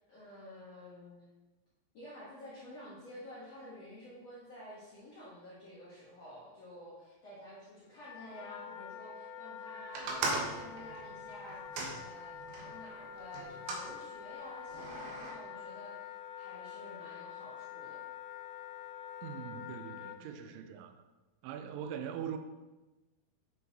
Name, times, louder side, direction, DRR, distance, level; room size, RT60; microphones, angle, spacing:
voice 1, 0.1-1.3 1.9-11.6 11.9-18.0 20.2-20.7, equal, 70° left, -9 dB, 1.5 m, -51 dB
Wind instrument woodwind instrument, 8.0-20.2, left 8 dB, 90° left, 3.0 m, -46 dB
sound 1, 9.9-12.7 13.3-13.9 14.7-15.3, right 3 dB, 70° right, 2.5 m, -38 dB
voice 2, 19.2-20.9 21.4-22.4, right 8 dB, 85° right, 8 dB, 3.0 m, -41 dB
9.4 x 5.9 x 2.8 m, 1.1 s
omnidirectional pair, 5.3 m